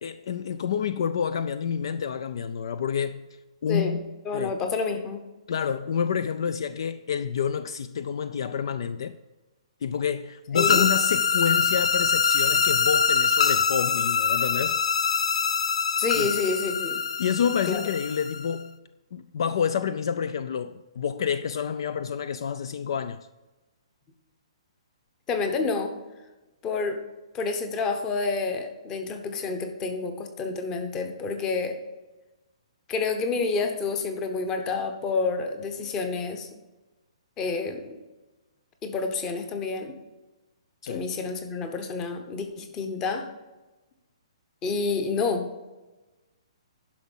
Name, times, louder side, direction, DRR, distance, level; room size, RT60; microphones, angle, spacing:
voice 1, 0.0-3.3 3.6-4.5 5.5-9.2 9.8-14.8 16.1-16.4 17.2-18.8 19.1-23.2 40.8-41.1, left 7 dB, 50° left, 0.4 m, -28 dB
voice 2, 3.7-4.0 4.2-5.2 10.5-10.8 16.0-17.0 17.7-17.8 25.3-25.9 26.6-27.0 27.3-31.8 32.9-36.5 37.4-38.0 38.8-39.9 40.9-43.2 44.6-45.7, left 4 dB, 15° left, 0.9 m, -29 dB
sound 1, 10.6-18.5, left 6 dB, 85° left, 0.7 m, -24 dB
10.5 x 6.0 x 5.5 m
hypercardioid pair, 170°, 3 cm